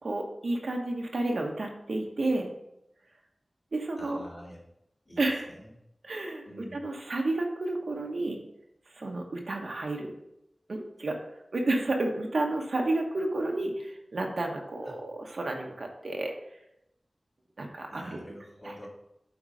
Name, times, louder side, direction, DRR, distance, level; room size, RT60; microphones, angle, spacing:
voice 1, 0.0-2.5 3.7-4.2 5.2-5.5 6.0-8.4 8.9-10.1 10.7-11.2 11.5-16.3 17.6-18.2 18.6-18.7, right 2 dB, 80° right, 1 dB, 1.1 m, -31 dB
voice 2, 4.0-4.6 5.0-5.2 5.5-5.7 6.5-6.8 14.8-15.0 17.9-18.9, equal, 35° left, -5 dB, 3.0 m, -46 dB
8.0 x 3.9 x 5.0 m, 0.82 s
cardioid pair, 45°, 0 cm